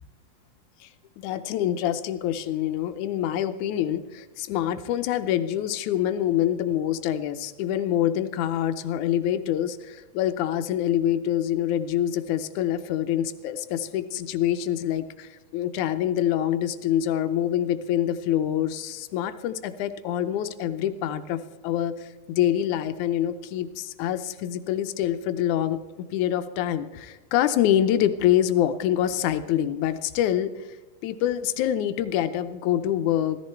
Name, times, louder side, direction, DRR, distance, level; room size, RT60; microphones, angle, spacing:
voice 1, 1.2-25.8 26.1-30.7 31.0-33.4, left 11 dB, 80° left, 10 dB, 2.1 m, -26 dB
16.0 x 13.5 x 4.5 m, 1.2 s
omnidirectional pair, 3.5 m